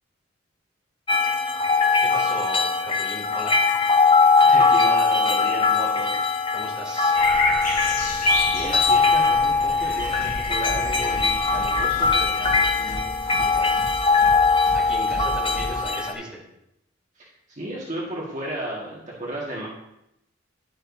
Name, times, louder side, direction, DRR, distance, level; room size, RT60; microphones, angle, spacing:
sound 1, 1.1-16.1, left 4 dB, 25° left, 0.7 m, -21 dB
voice 1, 2.0-3.7 6.5-7.3 14.7-16.4, equal, 5° right, -5 dB, 2.7 m, -36 dB
voice 2, 4.4-6.1 8.2-13.8 17.1-19.7, right 1 dB, 40° right, -4 dB, 1.6 m, -34 dB
sound 2, 7.1-12.3, left 3 dB, 40° left, 2.4 m, -30 dB
sound 3, 9.9-15.8, equal, 65° left, 3.5 m, -36 dB
11.5 x 7.6 x 2.7 m, 0.82 s
head